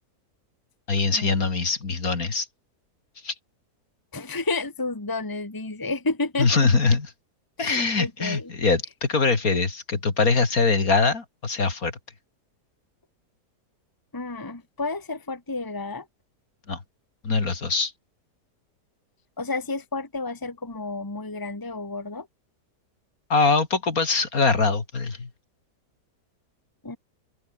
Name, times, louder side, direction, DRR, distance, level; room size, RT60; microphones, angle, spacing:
voice 1, 0.9-2.5 3.2-3.3 6.4-7.1 7.6-12.0 16.7-16.8 17.2-17.9 23.3-25.3, left 4 dB, 60° left, 3.2 m, -23 dB
voice 2, 4.1-6.7 7.6-8.5 14.1-16.1 19.4-22.3 26.8-27.0, left 3 dB, 15° left, 1.7 m, -31 dB
open air
omnidirectional pair, 1.8 m